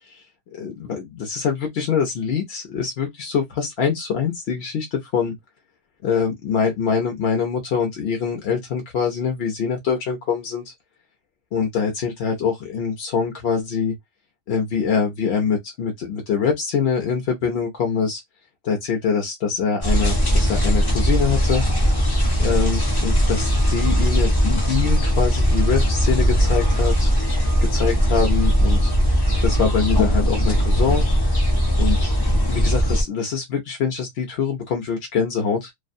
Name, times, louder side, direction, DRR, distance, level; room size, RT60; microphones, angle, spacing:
voice 1, 0.5-5.3 6.0-10.6 11.5-13.9 14.5-18.2 18.6-21.6 22.4-27.1 27.7-28.9 29.4-31.0 31.8-32.1 32.5-35.7, left 6 dB, 60° left, 0.8 m, -24 dB
sound 1, 19.8-33.0, equal, 35° left, 0.4 m, -19 dB
2.4 x 2.2 x 2.5 m
omnidirectional pair, 1.4 m